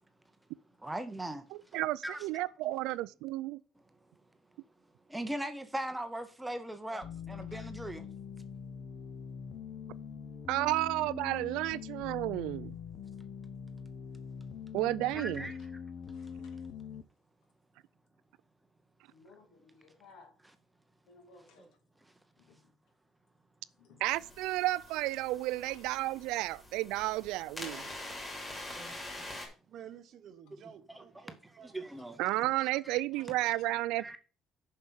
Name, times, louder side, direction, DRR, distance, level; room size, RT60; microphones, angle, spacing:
voice 1, 0.8-2.2 5.1-8.1 15.1-15.6 21.6-21.7 22.0-22.1 28.7-29.3 30.9-32.2 32.8-33.0 34.0-34.2, right 1 dB, 5° right, 0.7 m, -40 dB
voice 2, 1.5-3.6 10.5-12.8 14.7-15.5 24.0-27.9 32.2-34.2, right 17 dB, 80° right, 0.4 m, -32 dB
sound 1, 7.0-17.0, left 7 dB, 35° left, 0.7 m, -43 dB
voice 3, 16.1-16.6 19.1-20.4 21.1-21.8 22.4-22.7 23.8-24.1 25.6-25.8 27.0-27.1 33.1-33.4, left 4 dB, 70° left, 2.6 m, -59 dB
sound 2, 24.1-29.5, left 1 dB, 15° left, 2.6 m, -45 dB
voice 4, 29.7-31.7, right 9 dB, 40° right, 0.8 m, -51 dB
7.2 x 5.6 x 6.3 m
cardioid pair, 175°, 0 cm